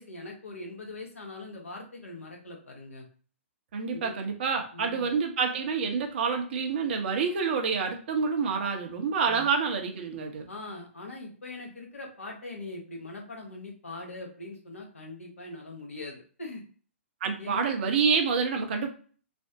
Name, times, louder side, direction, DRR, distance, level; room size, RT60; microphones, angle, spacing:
voice 1, 0.0-3.1 3.9-4.1 4.7-5.1 9.2-9.5 10.5-16.6 17.4-17.7, left 2 dB, 80° left, 0 dB, 1.2 m, -42 dB
voice 2, 3.7-10.5 17.2-18.9, right 5 dB, 50° right, 4 dB, 0.8 m, -28 dB
3.3 x 2.1 x 2.7 m, 0.41 s
figure-of-eight pair, 120°, 7 cm